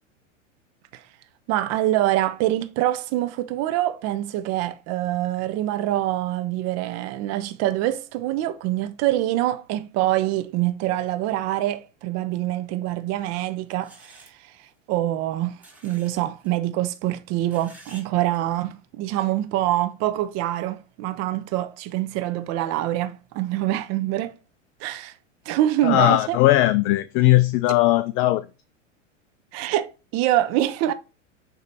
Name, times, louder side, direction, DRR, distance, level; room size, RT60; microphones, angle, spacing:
voice 1, 1.5-14.3 14.9-24.3 24.8-25.1 25.4-26.4 29.5-30.9, right 14 dB, 45° right, 1.0 m, -25 dB
sound 1, 13.2-13.3 13.8-14.3 15.6-16.1 16.4-16.5 17.4-18.1 18.3-18.4, right 2 dB, 5° right, 2.1 m, -49 dB
voice 2, 25.8-28.4, left 16 dB, 35° left, 0.4 m, -18 dB
8.2 x 3.2 x 4.1 m
hypercardioid pair, 105°, 37 cm